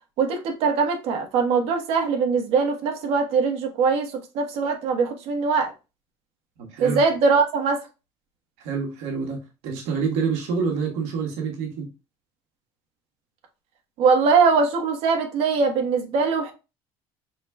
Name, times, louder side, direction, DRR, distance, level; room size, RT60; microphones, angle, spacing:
voice 1, 0.2-5.7 6.8-7.8 14.0-16.5, right 5 dB, 65° right, 1.3 m, -22 dB
voice 2, 6.6-7.0 8.6-11.9, right 5 dB, 80° right, 1.4 m, -27 dB
5.0 x 3.8 x 2.3 m
cardioid pair, 150°, 11 cm